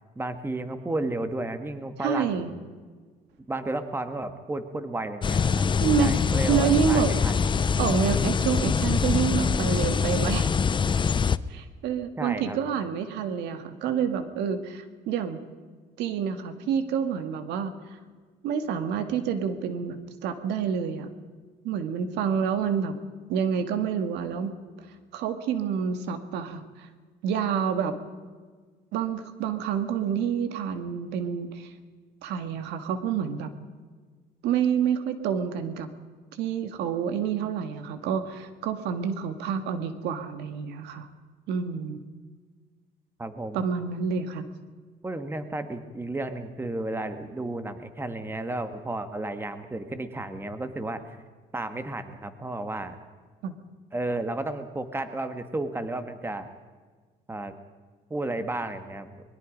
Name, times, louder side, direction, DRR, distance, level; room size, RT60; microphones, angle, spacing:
voice 1, 0.1-2.6 3.5-5.6 6.0-7.4 12.2-12.6 43.2-43.6 45.0-51.2 51.5-53.0 53.9-56.5 57.3-57.5 58.1-59.2, right 2 dB, 15° right, 9 dB, 1.8 m, -33 dB
voice 2, 2.0-2.5 5.8-6.1 6.5-7.1 7.8-10.5 11.5-15.4 16.0-17.7 18.4-20.0 20.2-21.1 21.6-22.9 23.3-24.5 25.1-26.9 27.2-27.9 28.9-31.7 32.2-33.5 34.4-35.9 36.4-41.1 41.5-42.0 43.5-44.4 53.4-53.5, right 7 dB, 85° right, 9 dB, 2.0 m, -28 dB
sound 1, 5.2-11.4, left 6 dB, 30° left, 0.7 m, -24 dB
23.5 x 21.5 x 5.3 m, 1.5 s
cardioid pair, 110°, 17 cm